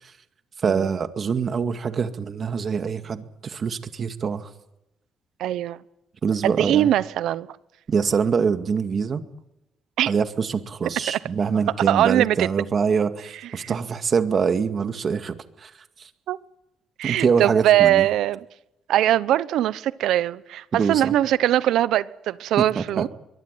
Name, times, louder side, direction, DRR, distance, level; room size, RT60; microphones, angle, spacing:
voice 1, 0.6-4.5 6.2-6.9 7.9-9.2 10.1-15.7 16.0-16.1 17.0-18.0 20.7-21.1 22.8-23.1, right 6 dB, 45° right, 2.1 m, -24 dB
voice 2, 5.4-5.8 6.4-7.5 10.0-10.1 11.9-12.5 13.6-13.7 16.3-16.4 17.0-18.4 18.9-23.1, right 12 dB, 85° right, 0.9 m, -21 dB
23.0 x 18.0 x 9.3 m
cardioid pair, 90°, 0 cm